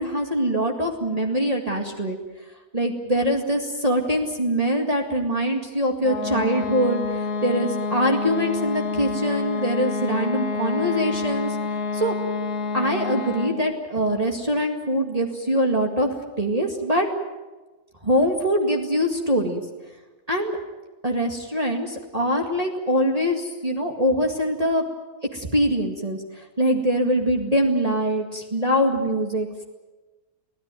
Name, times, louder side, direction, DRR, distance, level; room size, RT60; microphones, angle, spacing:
voice 1, 0.0-2.2 2.7-7.0 7.4-11.5 11.9-12.2 12.7-17.1 18.0-19.6 20.3-20.6 21.0-24.8 25.3-26.2 26.6-29.6, equal, 25° right, 1 dB, 2.1 m, -23 dB
sound 1, 6.0-13.7, left 4 dB, 65° left, 2.2 m, -28 dB
24.5 x 17.0 x 9.2 m, 1.2 s
omnidirectional pair, 1.6 m